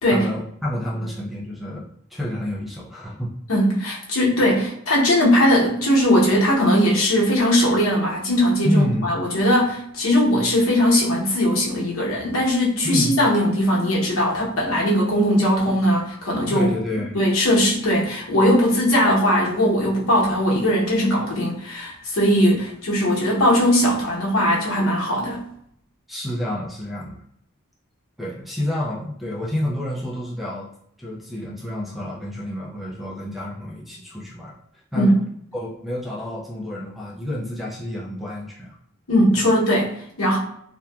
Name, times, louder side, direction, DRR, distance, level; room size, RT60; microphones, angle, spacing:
voice 1, 0.1-3.3 8.6-9.1 12.8-13.1 16.5-17.2 26.1-27.2 28.2-30.7 31.0-34.5 34.9-35.1 35.5-38.8 39.4-39.5, left 1 dB, ahead, -4 dB, 0.4 m, -29 dB
voice 2, 3.5-16.7 17.1-25.4 34.9-35.2 39.1-40.4, equal, 75° left, -4 dB, 0.9 m, -19 dB
2.7 x 2.2 x 2.3 m, 0.70 s
head